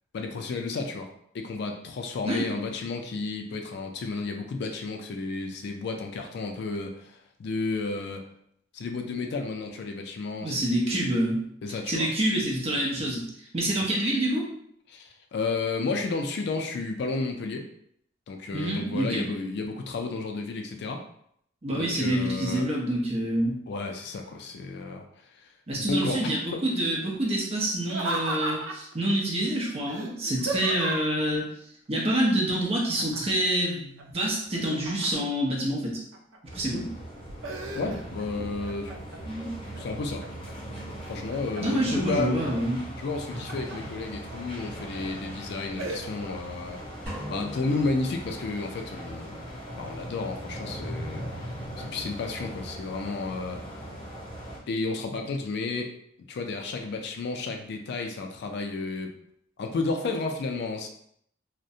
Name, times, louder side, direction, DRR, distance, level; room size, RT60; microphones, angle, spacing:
voice 1, 0.1-1.1 1.3-8.2 8.7-11.0 11.6-12.1 13.8-13.9 14.9-17.7 18.3-21.0 21.7-22.6 23.7-25.0 25.3-26.6 37.7-38.9 39.8-40.2 41.1-42.3 43.0-46.8 47.3-49.4 49.8-51.5 51.8-53.6 54.7-55.9 56.3-59.1 59.6-60.9, left 3 dB, 60° left, 4 dB, 0.3 m, -32 dB
voice 2, 10.4-11.4 11.9-13.3 13.5-14.4 18.5-19.3 21.6-23.6 25.7-31.5 31.9-36.0 36.5-36.9 39.3-39.5 41.6-42.8, right 1 dB, 30° right, -3 dB, 0.6 m, -27 dB
Laughter, 27.8-28.9 29.9-31.2 33.0-33.4 33.8-35.4 35.9-36.6 37.0-38.3 38.6-39.2 39.7-40.5 41.0-41.8 43.0-43.8 44.3-44.4 44.9-45.2 45.8-46.0, right 2 dB, 80° right, 0.4 m, -35 dB
sound 1, 36.4-54.6, equal, 30° left, 0.7 m, -39 dB
sound 2, 47.1-48.9, equal, 5° left, 1.3 m, -40 dB
2.4 x 2.1 x 2.7 m, 0.69 s
head